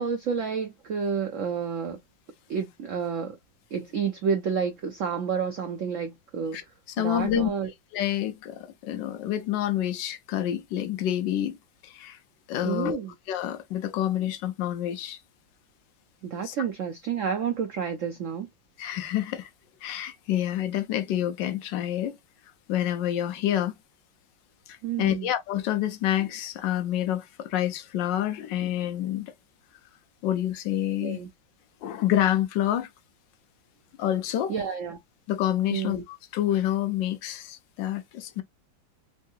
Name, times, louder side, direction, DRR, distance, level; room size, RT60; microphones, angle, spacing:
voice 1, 0.0-2.0 2.5-3.4 3.7-6.6 7.0-7.7 12.6-13.1 16.2-18.5 24.8-25.3 31.0-31.3 34.5-35.0 35.7-36.0, right 6 dB, 80° right, 0.7 m, -30 dB
voice 2, 7.0-7.5 7.9-11.6 11.8-12.2 12.5-13.0 13.3-15.2 16.4-16.5 18.8-19.5 19.8-22.2 22.7-23.7 24.7-29.3 30.2-31.2 31.8-32.9 34.0-34.5 35.3-38.4, left 12 dB, 80° left, 1.2 m, -28 dB
3.6 x 2.7 x 2.3 m
omnidirectional pair, 2.0 m